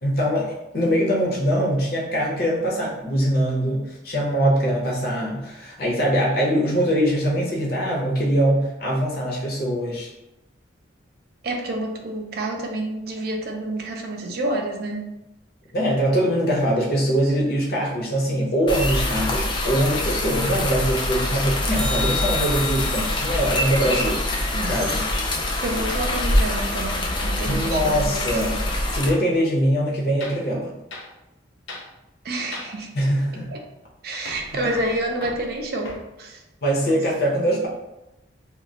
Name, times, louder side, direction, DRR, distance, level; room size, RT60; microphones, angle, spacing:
voice 1, 0.0-10.1 15.7-25.0 27.4-28.6 28.9-30.7 32.9-33.5 34.5-34.7 36.6-37.7, equal, 55° left, -3 dB, 0.7 m, -23 dB
voice 2, 11.4-15.1 24.5-25.0 25.6-28.3 32.2-32.9 33.5-33.6 34.0-36.4, right 1 dB, 55° right, 2 dB, 0.4 m, -29 dB
sound 1, 18.7-29.1, left 1 dB, 25° left, 0.3 m, -24 dB
sound 2, 21.7-26.2 32.8-32.9, left 4 dB, 25° right, 0.8 m, -35 dB
Hammer, 25.6-27.7 30.2-30.5 30.9-31.1 31.7-31.9 32.5-32.8 34.3-36.1, left 2 dB, 85° left, 0.4 m, -40 dB
2.2 x 2.1 x 3.7 m, 0.92 s
head